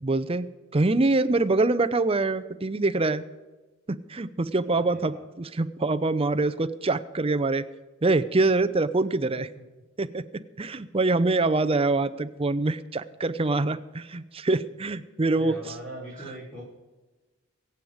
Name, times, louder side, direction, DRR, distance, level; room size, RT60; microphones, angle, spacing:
voice 1, 0.0-3.2 3.9-7.7 8.0-9.5 10.0-15.6, right 3 dB, 30° right, 12 dB, 0.6 m, -25 dB
voice 2, 4.6-5.3 9.3-9.6 15.3-16.6, right 1 dB, 5° left, -6 dB, 4.2 m, -42 dB
24.0 x 8.0 x 5.0 m, 1.2 s
head